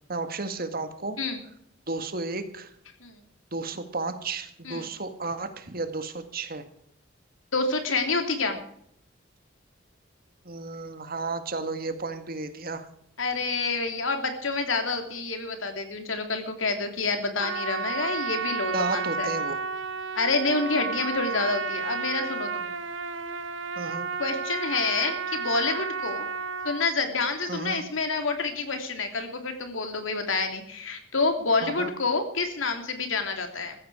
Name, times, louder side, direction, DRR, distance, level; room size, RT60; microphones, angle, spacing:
voice 1, 0.1-1.2 1.9-2.7 3.5-6.6 10.5-12.9 18.7-19.6 23.8-24.1 27.5-27.8 31.6-31.9, right 3 dB, 50° right, 9 dB, 1.8 m, -33 dB
voice 2, 7.5-8.6 13.2-19.3 20.1-22.7 24.2-26.2 26.6-33.8, left 3 dB, 85° left, 6 dB, 3.1 m, -28 dB
Trumpet, 17.4-26.9, right 5 dB, 75° right, 1.2 m, -32 dB
16.0 x 14.0 x 4.9 m, 0.69 s
head